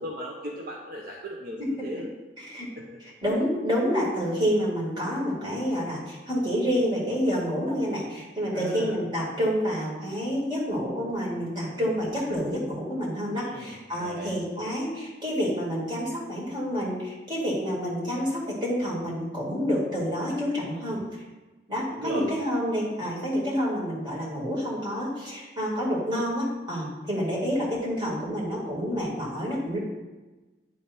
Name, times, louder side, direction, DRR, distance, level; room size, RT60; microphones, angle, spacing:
voice 1, 0.0-2.1 2.8-2.9 8.5-9.0 13.4-13.7 14.0-14.3 21.9-22.2, equal, 55° right, -2 dB, 0.8 m, -36 dB
voice 2, 2.4-2.7 3.0-21.0 21.7-29.8, equal, 25° right, -6 dB, 2.2 m, -28 dB
9.8 x 3.5 x 4.3 m, 1.2 s
head